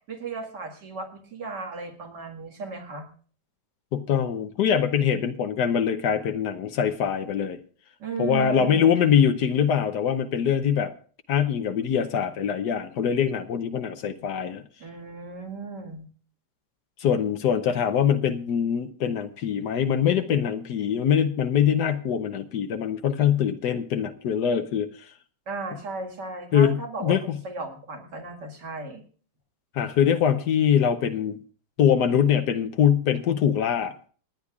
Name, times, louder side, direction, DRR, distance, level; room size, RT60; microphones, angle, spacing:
voice 1, 0.1-3.1 8.0-9.2 14.8-16.1 25.5-29.0, right 4 dB, 80° right, 2 dB, 2.6 m, -36 dB
voice 2, 3.9-7.6 8.2-10.9 11.3-14.6 17.0-25.1 26.5-27.4 29.7-31.4 31.8-33.9, left 8 dB, 80° left, 8 dB, 1.3 m, -23 dB
28.5 x 9.9 x 2.4 m, 0.43 s
omnidirectional pair, 1.8 m